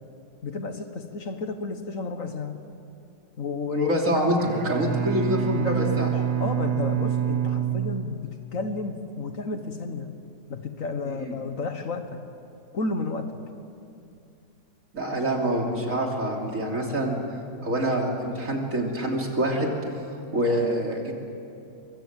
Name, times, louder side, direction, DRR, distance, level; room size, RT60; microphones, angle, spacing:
voice 1, 0.4-2.6 3.4-3.9 5.5-6.1 6.4-10.1 10.5-12.2 12.7-13.4, left 3 dB, 55° left, 7 dB, 1.7 m, -32 dB
voice 2, 3.7-4.4 4.6-6.1 11.0-11.3 14.9-17.2 17.6-19.8 20.3-21.1, equal, 55° right, 0 dB, 3.5 m, -26 dB
Bowed string instrument, 4.3-8.6, right 9 dB, 75° right, 2.0 m, -27 dB
24.5 x 23.5 x 7.5 m, 2.5 s
omnidirectional pair, 1.7 m